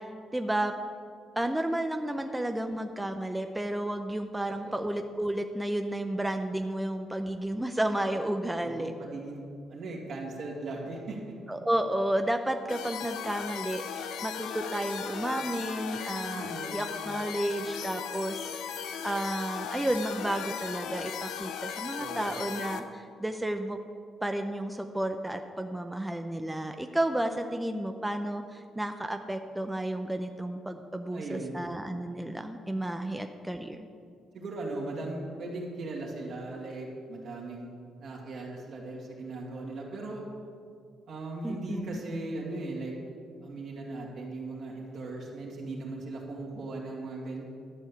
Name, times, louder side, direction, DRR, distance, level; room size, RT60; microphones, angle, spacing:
voice 1, 0.3-0.7 1.4-8.9 11.5-18.7 19.0-23.8 24.2-33.9 41.4-42.0, right 1 dB, 10° right, 6 dB, 0.6 m, -32 dB
voice 2, 8.6-9.4 9.7-11.3 16.3-16.7 22.0-22.5 31.1-31.6 33.0-33.1 34.3-37.7 38.0-40.2 41.1-42.9 43.4-47.4, right 2 dB, 65° right, -3 dB, 2.5 m, -38 dB
sound 1, 12.7-22.8, left 7 dB, 90° left, 0.7 m, -37 dB
12.5 x 5.5 x 8.4 m, 2.2 s
cardioid pair, 90°, 0 cm